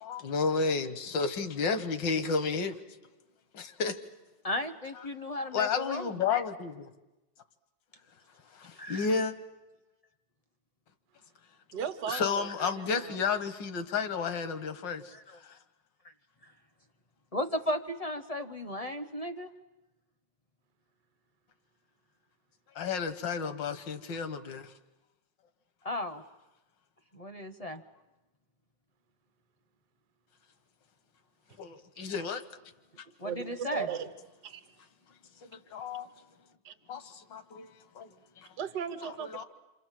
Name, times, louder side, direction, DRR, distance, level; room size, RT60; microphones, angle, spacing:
voice 1, 0.0-2.8 3.5-4.0 5.0-5.1 5.4-6.9 8.5-9.3 12.1-15.1 15.4-15.6 22.8-24.7 31.6-32.4 35.4-36.1 36.9-38.1 38.4-38.5 39.0-39.4, left 5 dB, 80° left, 1.9 m, -32 dB
voice 2, 4.4-6.2 8.8-9.1 15.1-15.4 17.3-19.5 25.8-26.2 27.1-27.8 33.2-33.9, left 1 dB, 35° left, 0.6 m, -35 dB
voice 3, 11.7-13.2 33.2-34.1 34.4-34.6 36.6-36.7 38.6-39.4, right 8 dB, 65° right, 1.7 m, -37 dB
27.0 x 26.5 x 7.6 m
omnidirectional pair, 2.0 m